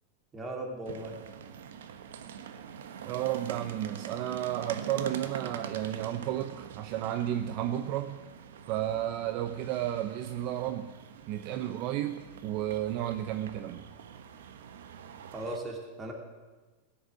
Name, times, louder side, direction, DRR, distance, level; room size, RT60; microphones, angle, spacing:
voice 1, 0.3-1.1 15.3-16.1, right 1 dB, 15° right, 1 dB, 3.0 m, -37 dB
sound 1, 0.9-15.6, right 8 dB, 85° right, 1.3 m, -44 dB
voice 2, 3.0-8.2 8.7-11.0 11.3-13.9, right 12 dB, 45° right, 9 dB, 0.7 m, -32 dB
16.5 x 7.2 x 9.6 m, 1.3 s
supercardioid pair, 140°, 0 cm